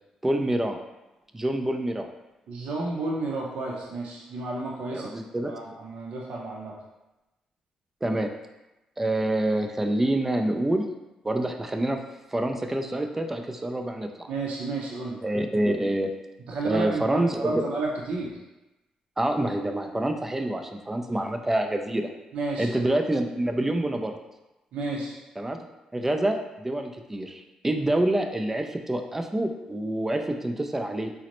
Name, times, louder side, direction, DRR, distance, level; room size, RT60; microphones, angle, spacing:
voice 1, 0.2-0.8 1.3-2.1 4.9-5.5 8.0-8.3 9.0-10.9 11.2-12.0 12.3-14.3 15.2-16.1 16.6-17.5 19.2-22.1 22.6-24.2 25.4-25.6 25.9-31.1, right 1 dB, 15° right, 5 dB, 0.3 m, -27 dB
voice 2, 2.5-5.1 5.4-6.7 14.3-15.2 16.5-18.3 22.3-22.8 24.7-25.2, right 2 dB, 75° right, -3 dB, 0.6 m, -31 dB
3.9 x 2.0 x 3.0 m, 1.0 s
cardioid pair, 85°, 2 cm